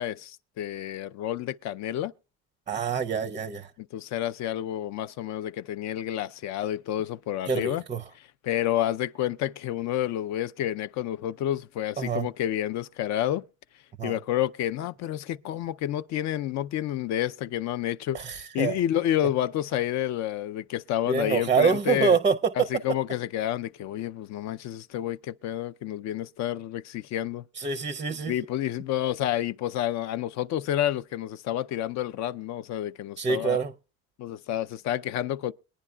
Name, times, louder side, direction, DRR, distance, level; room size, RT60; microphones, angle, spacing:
voice 1, 0.0-2.1 3.8-7.8 8.2-13.4 14.0-18.2 18.5-22.2 22.6-27.5 28.3-33.6 34.2-35.5, left 12 dB, 55° left, 0.6 m, -29 dB
voice 2, 2.7-3.7 7.5-8.0 12.0-12.3 14.0-14.1 18.1-18.7 21.1-22.4 27.6-28.3 33.2-33.7, right 6 dB, 20° right, 0.5 m, -26 dB
22.0 x 10.0 x 2.3 m
cardioid pair, 135°, 33 cm